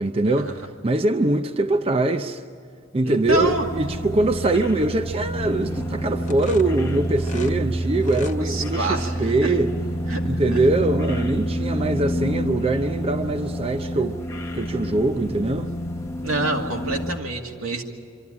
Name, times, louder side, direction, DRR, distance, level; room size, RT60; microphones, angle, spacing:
voice 1, 0.0-2.4 2.9-9.7 10.2-14.2 14.5-15.7, right 2 dB, 30° right, 0.5 m, -23 dB
voice 2, 3.0-3.7 8.4-9.1 9.4-9.5 10.1-10.6 16.2-17.8, right 2 dB, 85° right, 2.3 m, -27 dB
sound 1, 3.2-17.2, equal, 15° left, 0.9 m, -28 dB
sound 2, 6.2-7.6 7.9-8.4, left 3 dB, 35° left, 1.0 m, -37 dB
24.5 x 14.0 x 9.7 m
head